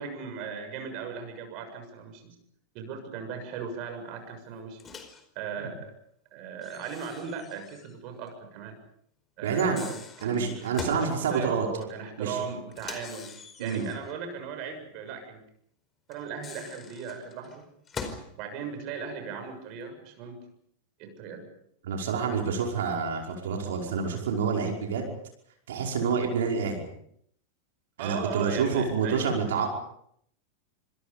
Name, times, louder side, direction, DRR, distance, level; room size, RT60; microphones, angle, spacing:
voice 1, 0.0-2.2 2.7-4.8 5.3-5.9 6.3-8.8 9.4-10.5 10.9-13.3 13.6-15.4 16.1-17.7 18.3-20.4 21.0-21.5 28.0-29.3, right 6 dB, 40° right, 6 dB, 6.7 m, -37 dB
Microwave oven, 4.8-5.2 6.6-8.0 8.3-8.4 9.5-11.1 12.7-14.1 16.1-18.3, left 5 dB, 20° left, 4.8 m, -43 dB
voice 2, 9.4-9.8 10.2-11.7 12.2-12.4 13.6-13.8 21.8-25.1 25.7-26.9 28.0-29.7, right 5 dB, 60° right, 1 dB, 5.3 m, -28 dB
28.0 x 26.5 x 5.3 m, 0.69 s
figure-of-eight pair, 90°, 0 cm